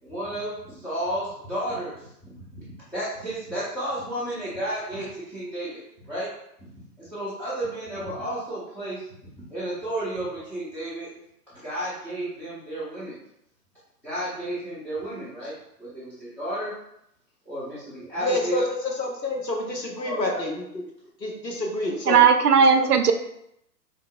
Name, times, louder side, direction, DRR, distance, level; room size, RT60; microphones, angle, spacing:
voice 1, 0.0-6.3 7.0-9.0 9.4-11.1 11.6-13.2 14.0-15.5 15.8-16.7 17.5-18.7 20.0-20.2, right 1 dB, 5° left, -13 dB, 0.6 m, -32 dB
voice 2, 18.2-20.6 21.2-22.2 22.7-22.9, left 2 dB, 90° left, 0 dB, 1.0 m, -28 dB
voice 3, 22.1-23.1, right 6 dB, 70° right, 8 dB, 0.5 m, -17 dB
5.2 x 2.8 x 2.3 m, 0.78 s
figure-of-eight pair, 110°, 49 cm